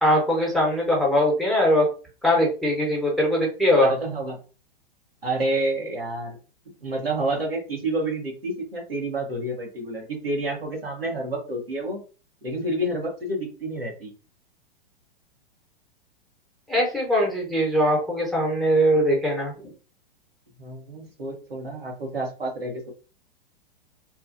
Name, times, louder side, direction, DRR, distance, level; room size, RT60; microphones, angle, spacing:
voice 1, 0.0-1.9 2.2-3.9 16.7-19.5, equal, ahead, -3 dB, 0.9 m, -21 dB
voice 2, 3.8-4.4 5.2-6.4 6.8-12.0 12.4-14.1 20.6-22.9, right 1 dB, 80° right, 0 dB, 1.2 m, -29 dB
3.0 x 2.3 x 2.5 m, 0.35 s
figure-of-eight pair, 105°, 29 cm